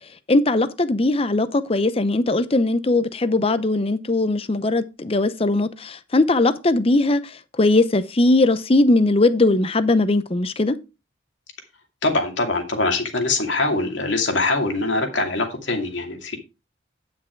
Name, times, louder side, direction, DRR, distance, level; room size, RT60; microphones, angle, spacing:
voice 1, 0.3-10.8, left 2 dB, 30° left, 0.7 m, -19 dB
voice 2, 12.0-16.4, left 2 dB, 70° left, 2.5 m, -23 dB
10.0 x 6.1 x 4.5 m
head